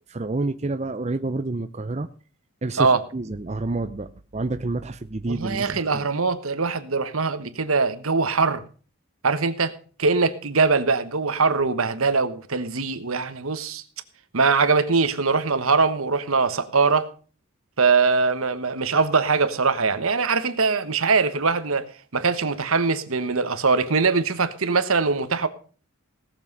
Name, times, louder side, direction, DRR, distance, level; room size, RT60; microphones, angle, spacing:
voice 1, 0.1-2.1 2.6-5.7 5.9-6.1, right 2 dB, 30° right, 10 dB, 0.6 m, -28 dB
voice 2, 5.3-8.6 9.2-9.7 10.0-13.8 14.3-17.1 17.8-21.8 22.1-25.5, right 4 dB, 80° right, 11 dB, 1.2 m, -22 dB
17.5 x 7.4 x 5.4 m, 0.40 s
head